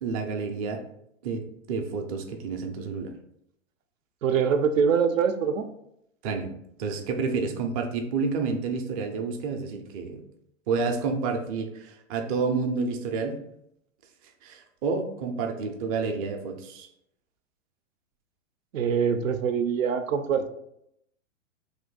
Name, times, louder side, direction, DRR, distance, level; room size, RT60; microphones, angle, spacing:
voice 1, 0.0-0.8 1.2-3.1 6.2-6.5 6.8-10.2 10.7-13.4 14.4-16.9, right 4 dB, 30° right, 5 dB, 0.4 m, -29 dB
voice 2, 4.2-5.7 18.7-20.5, right 6 dB, 80° right, 8 dB, 0.5 m, -24 dB
3.1 x 2.6 x 3.7 m, 0.77 s
hypercardioid pair, 120°, 39 cm